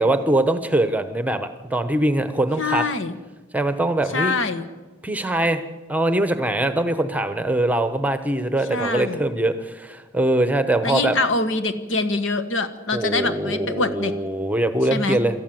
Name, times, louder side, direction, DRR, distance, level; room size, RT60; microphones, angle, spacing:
voice 1, 0.0-2.8 3.5-4.3 5.0-5.6 5.9-11.2 12.9-15.4, right 1 dB, 10° right, 10 dB, 0.9 m, -22 dB
voice 2, 2.6-3.1 4.1-4.7 8.7-9.2 10.8-14.1 14.9-15.2, left 3 dB, 70° left, 10 dB, 1.5 m, -24 dB
26.5 x 13.5 x 7.8 m, 1.3 s
head